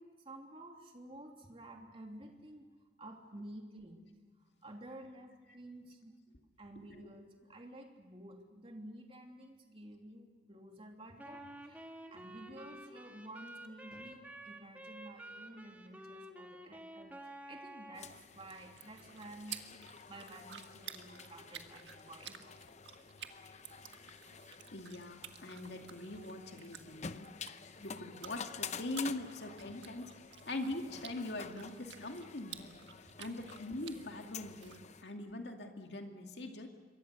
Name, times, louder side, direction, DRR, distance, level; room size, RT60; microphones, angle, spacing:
voice 1, 0.0-2.7 3.0-4.0 4.6-6.2 6.6-17.1 17.5-22.5 33.1-33.2, right 1 dB, 30° right, 2 dB, 3.0 m, -52 dB
Wind instrument woodwind instrument, 11.2-18.1, right 1 dB, 10° right, 1.9 m, -50 dB
sound 1, 17.9-35.0, left 6 dB, 40° left, 0.7 m, -50 dB
sound 2, 18.2-34.8, right 9 dB, 85° right, 1.5 m, -53 dB
voice 2, 24.7-30.1 30.5-32.7 33.2-36.7, left 2 dB, 70° left, 3 dB, 2.4 m, -42 dB
27.0 x 23.0 x 6.6 m, 1.4 s
head